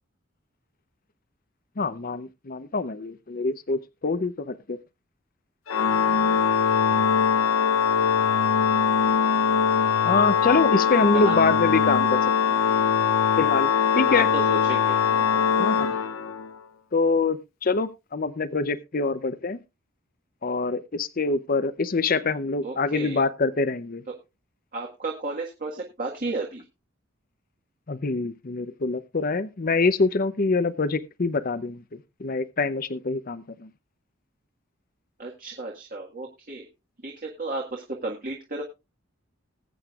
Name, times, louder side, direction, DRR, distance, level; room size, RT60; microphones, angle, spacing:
voice 1, 1.8-4.8 10.0-12.6 13.4-14.3 15.6-15.9 16.9-19.6 20.4-24.0 27.9-31.8 32.2-33.7, left 3 dB, 45° left, 0.7 m, -25 dB
Organ, 5.7-16.6, left 7 dB, 85° left, 0.8 m, -22 dB
voice 2, 10.9-11.4 14.0-15.7 22.6-23.2 24.1-24.2 24.7-26.6 35.2-36.7 37.0-38.6, right 2 dB, 45° right, 1.6 m, -34 dB
20.0 x 8.6 x 2.4 m
head